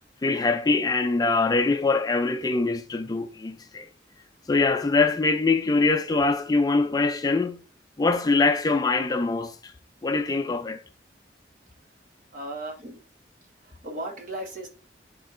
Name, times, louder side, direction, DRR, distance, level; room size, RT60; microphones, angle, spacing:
voice 1, 0.2-3.9 4.5-7.6 8.0-9.7 10.0-10.8, left 3 dB, 20° left, 0.4 m, -23 dB
voice 2, 12.3-13.0 13.8-14.7, right 1 dB, 50° right, 1.4 m, -35 dB
10.0 x 3.7 x 2.5 m
head